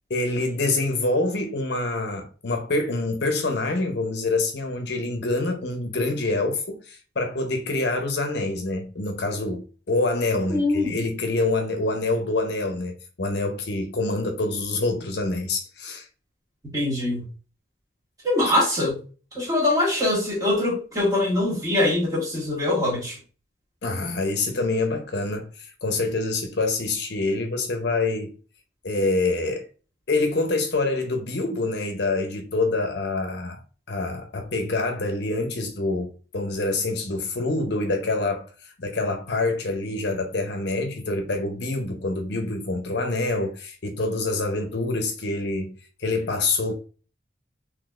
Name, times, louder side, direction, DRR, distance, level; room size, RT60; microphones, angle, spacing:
voice 1, 0.1-16.1 23.8-28.3 28.8-29.7 30.1-33.6 33.9-38.5 38.8-45.7 46.0-46.7, left 2 dB, 55° left, 0.6 m, -26 dB
voice 2, 10.5-11.0 16.7-17.2 18.2-19.0 19.3-23.2, left 1 dB, 15° right, 1.4 m, -23 dB
3.8 x 2.9 x 2.3 m
head